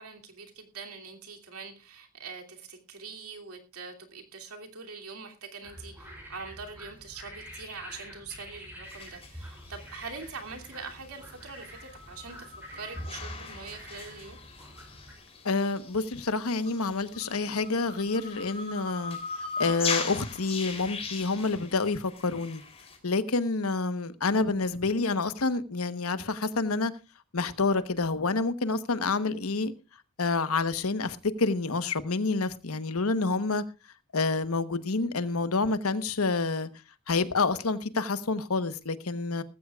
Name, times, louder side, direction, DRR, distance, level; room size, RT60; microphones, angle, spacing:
voice 1, 0.0-14.4, right 4 dB, 90° right, 2.8 m, -43 dB
sound 1, 5.6-15.1, equal, 10° right, 5.9 m, -46 dB
sound 2, 8.9-23.0, left 4 dB, 30° left, 3.4 m, -39 dB
voice 2, 15.4-19.2 19.6-22.6 23.0-26.9 27.3-29.7 30.2-33.6 34.1-36.7 37.1-39.4, left 3 dB, 85° left, 1.1 m, -28 dB
19.0 x 15.0 x 2.4 m
head